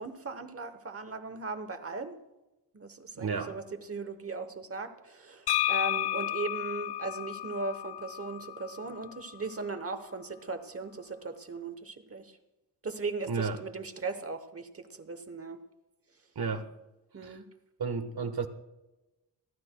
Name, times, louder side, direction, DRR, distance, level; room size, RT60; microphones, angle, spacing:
voice 1, 0.0-2.2 2.7-12.4 12.8-15.6 17.1-17.5 18.2-18.3, right 3 dB, 35° right, 10 dB, 1.0 m, -38 dB
voice 2, 3.1-3.6 13.3-13.6 16.3-16.7 17.2-17.4 17.8-18.5, right 5 dB, 60° right, 9 dB, 1.2 m, -32 dB
sound 1, 5.5-9.2, left 13 dB, 70° left, 0.6 m, -32 dB
28.0 x 12.0 x 2.2 m, 1.0 s
wide cardioid pair, 155°, 42 cm